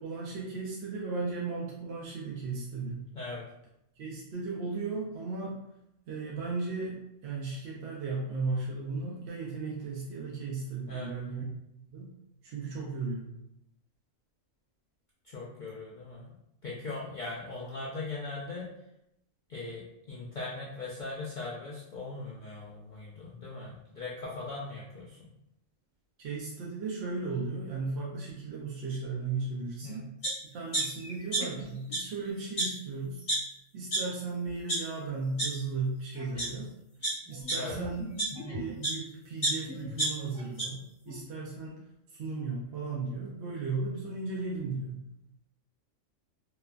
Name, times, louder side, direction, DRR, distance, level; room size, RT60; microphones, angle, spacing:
voice 1, 0.0-3.1 4.0-5.6 6.1-11.4 11.9-12.1 12.4-13.3 26.2-30.1 30.5-33.2 33.7-36.7 37.3-38.1 38.4-40.8 41.1-41.8 42.1-45.0, right 4 dB, 65° right, -4 dB, 0.7 m, -35 dB
voice 2, 15.2-16.3 16.6-18.7 19.5-25.3 29.8-30.0 37.5-37.8, left 3 dB, 90° left, -6 dB, 0.4 m, -40 dB
sound 1, 30.2-30.3 30.7-31.6 31.9-32.0 32.6-32.7 33.3-33.4 33.9-34.0 34.5-34.8 35.4-35.5 36.2-36.5 37.0-39.0 39.4-40.6 41.1-41.2, right 2 dB, 40° left, 1.1 m, -30 dB
3.0 x 2.1 x 2.4 m, 0.81 s
omnidirectional pair, 1.4 m